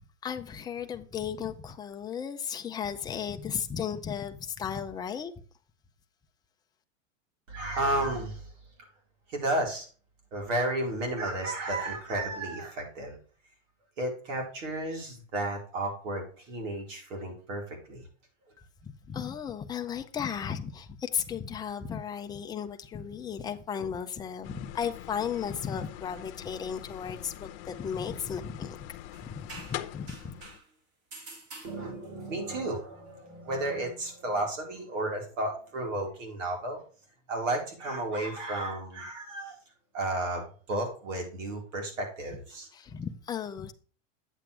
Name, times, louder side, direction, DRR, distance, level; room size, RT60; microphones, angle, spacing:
voice 1, 0.2-5.3 18.8-28.8 29.2-30.3 42.7-43.7, left 7 dB, 10° left, 6 dB, 0.5 m, -35 dB
voice 2, 7.5-8.5 9.3-9.9 10.3-13.2 14.0-18.1 31.6-36.8 37.3-39.6 39.9-40.4 40.7-42.7, right 1 dB, 75° right, 2 dB, 4.4 m, -32 dB
sound 1, 24.4-30.6, left 14 dB, 45° left, 0.9 m, -43 dB
sound 2, 29.1-30.7 31.1-32.3, right 3 dB, 40° right, 3.8 m, -47 dB
9.1 x 7.5 x 3.3 m, 0.40 s
supercardioid pair, 145°, 38 cm